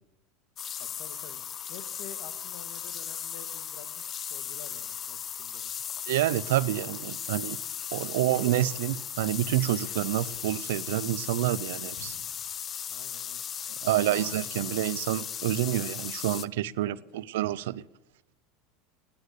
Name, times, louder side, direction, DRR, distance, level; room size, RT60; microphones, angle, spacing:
sound 1, 0.6-16.4, left 8 dB, 30° left, 0.6 m, -37 dB
voice 1, 0.8-5.7 12.9-13.4 14.1-14.3 16.8-17.3, left 8 dB, 65° left, 10 dB, 2.0 m, -49 dB
voice 2, 6.1-7.6 7.9-12.2 13.8-17.8, right 14 dB, 85° right, 19 dB, 0.6 m, -28 dB
sound 2, 8.2-14.0, left 3 dB, 90° left, 5.5 m, -54 dB
16.0 x 10.5 x 6.8 m, 0.95 s
supercardioid pair, 130°, 0 cm